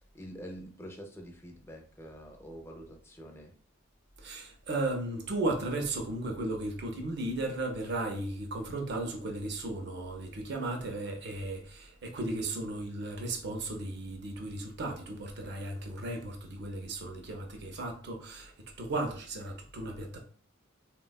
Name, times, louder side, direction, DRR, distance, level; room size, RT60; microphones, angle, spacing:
voice 1, 0.1-3.5, equal, 10° left, 0.5 m, -46 dB
voice 2, 4.2-18.5 18.8-20.2, right 2 dB, 55° right, 0.5 m, -35 dB
3.4 x 2.2 x 2.2 m
head